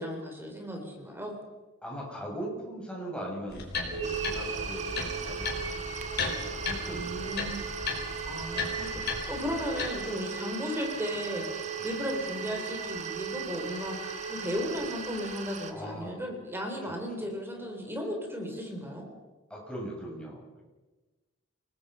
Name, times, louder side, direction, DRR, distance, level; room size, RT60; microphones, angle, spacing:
voice 1, 0.0-1.3 6.9-7.6 8.3-19.0, equal, 10° right, 2 dB, 3.9 m, -35 dB
voice 2, 1.8-5.5 5.9-6.1 6.4-7.4 11.9-12.0 15.7-16.2 16.8-17.3 19.5-20.4, right 1 dB, 5° left, -3 dB, 7.8 m, -40 dB
sound 1, 3.5-9.9, left 4 dB, 55° left, 5.0 m, -36 dB
sound 2, 3.9-15.9, right 5 dB, 75° right, 4.1 m, -39 dB
sound 3, 4.0-15.7, right 6 dB, 35° right, 1.8 m, -41 dB
28.5 x 19.5 x 5.8 m, 1.2 s
head